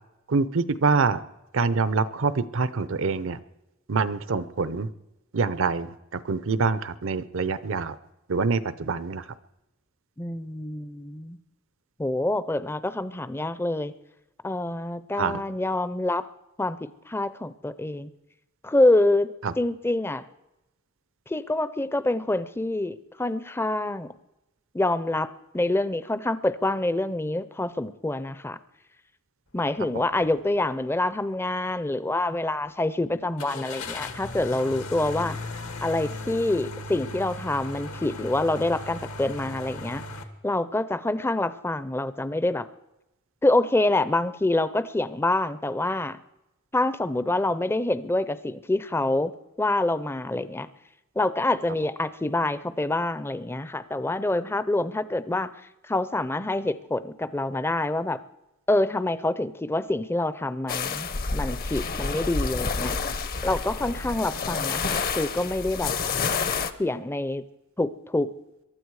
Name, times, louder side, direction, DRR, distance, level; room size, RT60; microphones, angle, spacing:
voice 1, 0.3-1.2 1.5-3.4 3.9-4.9 5.3-5.9 6.3-7.9 8.3-9.2 15.2-15.4, right 4 dB, 65° right, 16 dB, 0.7 m, -25 dB
voice 2, 10.2-11.4 12.0-13.9 14.4-16.3 16.6-18.1 18.6-20.2 21.3-24.1 24.7-28.6 29.5-35.4 35.8-40.0 40.4-42.7 43.4-46.2 46.7-49.3 49.6-50.7 51.2-55.5 55.8-58.2 58.7-63.0 63.4-65.9 66.8-67.4 67.8-68.3, left 2 dB, 10° left, 14 dB, 0.5 m, -26 dB
sound 1, 30.1-30.3 30.8-30.9 33.4-40.2, left 2 dB, 80° left, 1.6 m, -37 dB
sound 2, 60.7-66.7, left 5 dB, 45° left, 0.8 m, -29 dB
23.0 x 12.5 x 4.8 m, 0.96 s
head